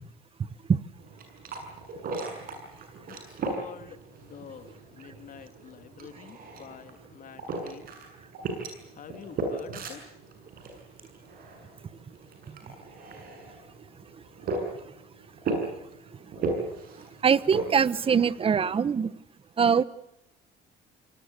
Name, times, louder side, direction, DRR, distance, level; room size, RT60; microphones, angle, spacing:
sound 1, 1.0-18.8, right 3 dB, 60° right, 7.3 m, -37 dB
voice 1, 3.1-7.9 8.9-10.0, left 7 dB, 50° left, 10 dB, 2.6 m, -47 dB
voice 2, 17.2-19.1 19.6-19.8, right 6 dB, 35° right, 19 dB, 1.1 m, -22 dB
26.5 x 20.0 x 8.1 m, 0.82 s
cardioid pair, 110°, 17 cm